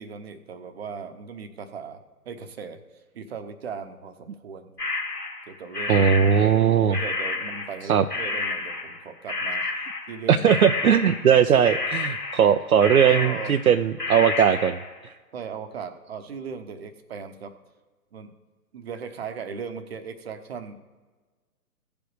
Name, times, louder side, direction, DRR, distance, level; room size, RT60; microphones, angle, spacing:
voice 1, 0.0-2.8 3.1-4.8 5.5-6.1 6.4-6.6 6.9-9.7 10.1-10.5 13.1-13.6 15.3-17.5 18.1-18.3 18.7-20.7, right 6 dB, 40° right, 8 dB, 0.9 m, -38 dB
sound 1, 4.8-7.8 8.1-9.0 9.3-10.2 10.5-14.9, left 3 dB, 85° left, 2.1 m, -30 dB
voice 2, 5.9-7.0 7.9-8.0 10.3-15.1, right 8 dB, 70° right, 8 dB, 0.6 m, -19 dB
15.5 x 5.2 x 4.7 m, 1.3 s
figure-of-eight pair, 130°, 46 cm